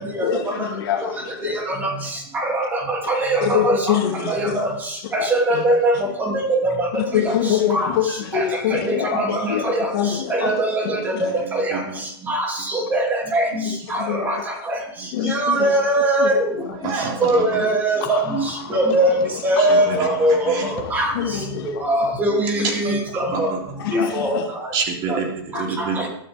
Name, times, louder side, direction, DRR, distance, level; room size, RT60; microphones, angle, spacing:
voice 1, 0.2-1.6 3.4-4.6 5.5-5.6 6.9-11.3 13.8-14.4 15.1-15.8 16.2-16.3 16.7-16.8 20.1-20.2 20.6-20.7 21.1-21.8 22.6-23.0 23.3-23.4 23.8-24.5 25.5-25.6, left 9 dB, 50° left, -5 dB, 3.2 m, -25 dB
voice 2, 2.3-3.9 4.3-4.7 5.1-5.9 6.2-6.9 7.1-7.2 7.7-7.9 8.3-8.4 8.7-9.9 10.3-11.0 11.5-11.8 12.3-13.5 13.9-14.4 15.3-16.4 17.2-18.4 18.7-19.2 19.4-21.1 21.8-23.5 23.9-24.4 25.1-25.2 25.8-26.1, right 1 dB, 15° right, 1 dB, 2.9 m, -21 dB
voice 3, 10.9-11.8 15.0-15.1 16.8-17.6 19.6-20.7 22.6-23.6 24.7-26.0, right 5 dB, 30° right, 1 dB, 3.6 m, -28 dB
sound 1, 17.2-22.8, left 10 dB, 30° left, 1.9 m, -36 dB
22.0 x 12.5 x 3.6 m, 0.74 s
supercardioid pair, 165°, 13 cm